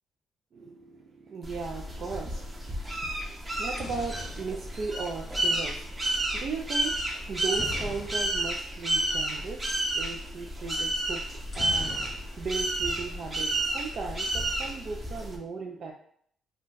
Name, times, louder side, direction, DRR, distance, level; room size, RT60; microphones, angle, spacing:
voice 1, 0.5-15.9, right 4 dB, 55° right, 1 dB, 0.3 m, -37 dB
sound 1, 1.4-15.4, right 1 dB, 20° right, 0.7 m, -31 dB
sound 2, 3.4-5.6 7.5-8.7 9.0-9.1 9.3-9.6 11.5-12.7 13.0-13.6, left 3 dB, 40° left, 0.4 m, -41 dB
2.5 x 2.1 x 3.7 m, 0.64 s
cardioid pair, 90°, 0 cm